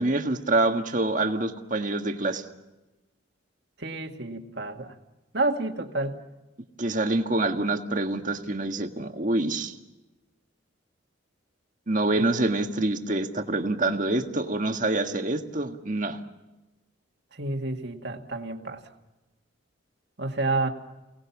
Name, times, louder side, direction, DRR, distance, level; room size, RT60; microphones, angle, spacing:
voice 1, 0.0-2.4 6.8-9.7 11.9-16.2, right 2 dB, 40° right, 5 dB, 1.7 m, -26 dB
voice 2, 3.8-4.9 5.3-6.2 12.2-12.3 17.4-18.8 20.2-20.7, right 2 dB, 55° right, 4 dB, 2.1 m, -29 dB
29.0 x 19.0 x 7.2 m, 1.1 s
head